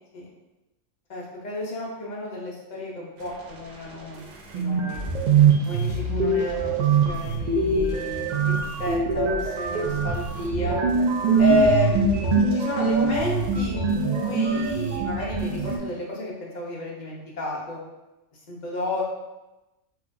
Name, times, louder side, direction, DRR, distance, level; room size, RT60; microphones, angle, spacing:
voice 1, 1.1-4.2 4.5-5.0 5.6-10.8 11.4-17.8 18.5-19.0, equal, 45° left, -4 dB, 0.7 m, -31 dB
sound 1, 4.2-4.3 4.5-15.8, right 4 dB, 75° right, 0.4 m, -23 dB
4.2 x 2.3 x 2.5 m, 1.0 s
omnidirectional pair, 1.3 m